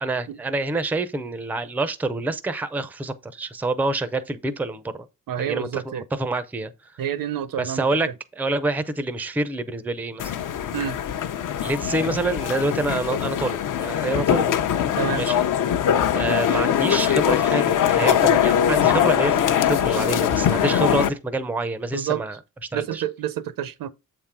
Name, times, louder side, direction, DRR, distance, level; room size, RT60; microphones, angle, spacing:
voice 1, 0.0-5.1 5.4-6.9 7.6-8.1 8.4-10.3 11.6-14.6 15.1-15.5 16.1-22.4 22.7-23.0, right 2 dB, 5° right, 0.4 m, -27 dB
voice 2, 5.3-6.0 7.0-7.9 10.7-11.0 15.0-15.3 21.0-21.1 21.9-22.2 22.7-23.9, right 10 dB, 75° right, 0.7 m, -28 dB
sound 1, 10.2-21.1, left 9 dB, 65° left, 0.7 m, -22 dB
7.8 x 3.7 x 4.3 m
wide cardioid pair, 175°, 34 cm